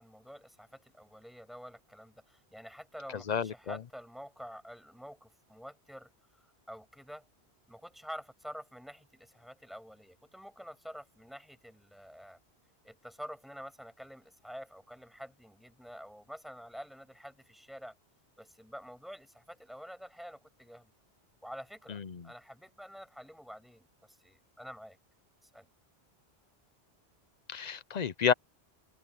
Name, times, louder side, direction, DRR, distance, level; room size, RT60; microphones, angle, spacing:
voice 1, 0.0-6.1 6.7-7.2 7.7-12.4 12.8-17.9 18.4-20.9 21.4-25.0 25.4-25.7, equal, ahead, 7.6 m, -48 dB
voice 2, 3.1-3.8 21.9-22.3 27.5-28.3, left 7 dB, 45° left, 0.7 m, -31 dB
omnidirectional pair, 1.1 m